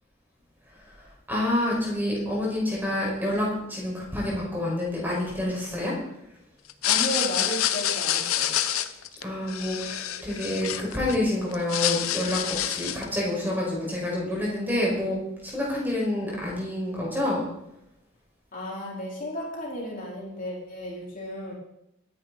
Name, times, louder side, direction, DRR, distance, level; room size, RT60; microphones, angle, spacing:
voice 1, 1.3-5.9 9.2-17.5, left 1 dB, 10° right, -4 dB, 5.5 m, -28 dB
sound 1, 6.7-11.2 11.5-13.1, left 11 dB, 80° left, 0.9 m, -27 dB
voice 2, 6.8-8.6 18.5-21.5, equal, 40° left, -4 dB, 4.5 m, -34 dB
21.5 x 10.0 x 4.3 m, 0.80 s
head